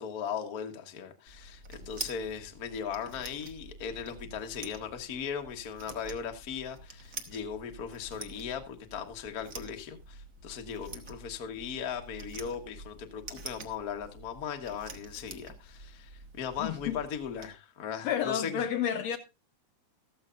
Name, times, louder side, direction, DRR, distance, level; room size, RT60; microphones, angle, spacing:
voice 1, 0.0-18.6, left 7 dB, 45° left, 1.2 m, -38 dB
sound 1, 1.3-17.5, right 3 dB, 50° right, 1.0 m, -47 dB
voice 2, 16.6-17.0 18.0-19.2, left 9 dB, 70° left, 1.8 m, -30 dB
14.0 x 13.5 x 2.5 m
omnidirectional pair, 3.5 m